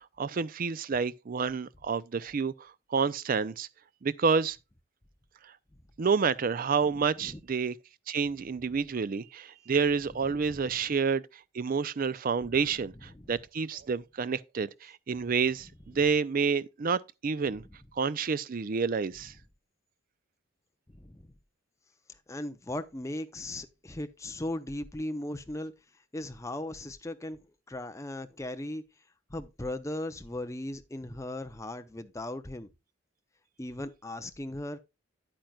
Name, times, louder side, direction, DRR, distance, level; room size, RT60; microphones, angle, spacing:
voice 1, 0.0-3.7 4.0-4.6 6.0-7.7 8.1-11.2 11.5-17.6 17.9-19.3, right 5 dB, 40° right, 0.4 m, -29 dB
voice 2, 21.0-21.3 22.3-25.7 26.1-27.4 27.7-28.8 29.3-32.7 33.6-34.8, left 1 dB, 15° left, 0.5 m, -37 dB
9.2 x 8.7 x 2.3 m
head